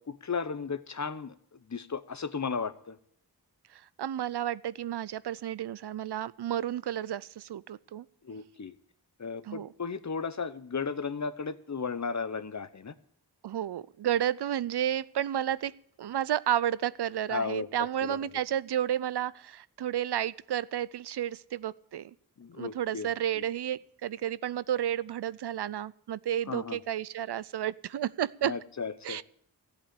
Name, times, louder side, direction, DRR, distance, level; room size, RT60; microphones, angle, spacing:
voice 1, 0.0-1.3 1.7-3.0 8.2-8.7 9.2-12.9 17.3-17.7 18.0-18.3 22.4-23.1 23.3-23.4 26.5-26.8 28.4-29.2, left 5 dB, 45° left, 14 dB, 0.9 m, -35 dB
voice 2, 3.7-8.0 9.5-9.7 13.4-15.7 16.0-22.1 22.6-28.5 29.0-29.2, right 11 dB, 75° right, 19 dB, 0.5 m, -31 dB
14.0 x 8.4 x 8.3 m, 0.67 s
cardioid pair, 50°, 40 cm